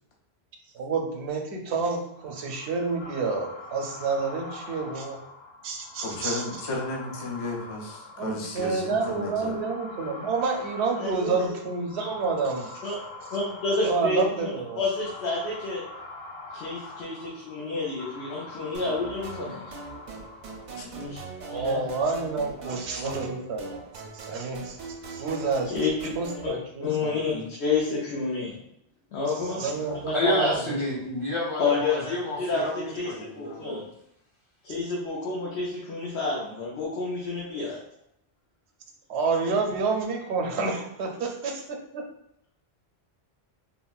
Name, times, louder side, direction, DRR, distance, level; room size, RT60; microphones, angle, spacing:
voice 1, 0.8-5.2 5.6-6.4 8.2-12.8 13.8-14.8 21.4-23.9 24.1-24.8 25.1-25.7 26.2-27.2 29.5-30.6 39.1-42.0, right 4 dB, 85° right, 2 dB, 0.8 m, -29 dB
sound 1, 2.1-21.0, left 2 dB, 65° left, 1.5 m, -44 dB
voice 2, 6.0-9.6 16.8-17.0 20.8-20.9 22.7-23.2 29.4-30.1 39.5-39.8, left 2 dB, 45° left, -1 dB, 0.4 m, -35 dB
voice 3, 11.0-11.4 12.8-13.0 13.3-15.8 16.5-19.7 20.9-21.2 21.5-21.8 25.6-25.9 26.4-28.6 29.1-29.6 30.0-30.3 31.6-32.0 32.4-33.8 34.6-37.8, left 4 dB, 85° left, -5 dB, 0.9 m, -29 dB
sound 2, 18.7-26.5, right 4 dB, 55° right, 0.6 m, -42 dB
voice 4, 30.1-33.8, left 1 dB, 30° left, -5 dB, 0.8 m, -29 dB
3.6 x 2.1 x 2.3 m, 0.77 s
omnidirectional pair, 1.1 m